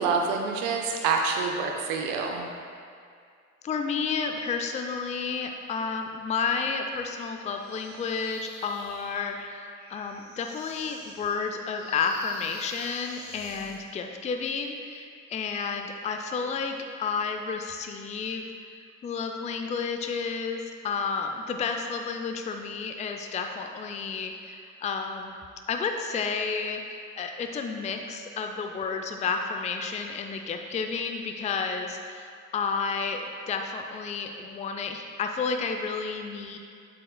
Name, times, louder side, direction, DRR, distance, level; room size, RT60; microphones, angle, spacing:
voice 1, 0.0-2.5, right 4 dB, 60° right, 1 dB, 0.7 m, -27 dB
voice 2, 3.6-18.5 19.0-25.3 25.7-36.6, left 5 dB, 20° left, 4 dB, 0.5 m, -31 dB
sound 1, 7.5-13.9, left 2 dB, 85° left, 0.9 m, -47 dB
7.7 x 7.6 x 2.2 m, 2.2 s
figure-of-eight pair, 50°, 38 cm